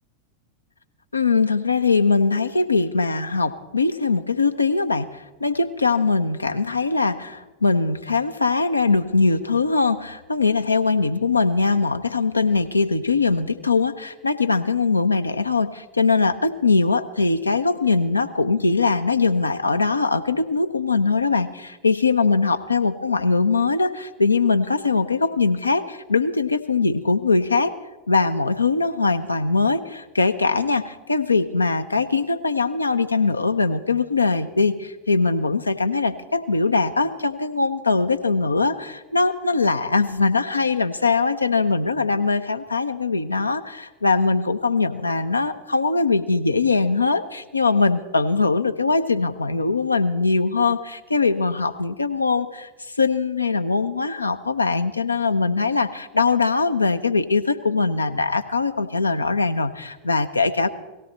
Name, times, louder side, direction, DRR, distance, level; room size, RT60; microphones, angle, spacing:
voice 1, 1.1-27.7 28.1-52.7 53.0-60.7, left 4 dB, 80° left, 10 dB, 0.7 m, -21 dB
18.5 x 16.0 x 4.3 m, 1.2 s
figure-of-eight pair, 90°, 0 cm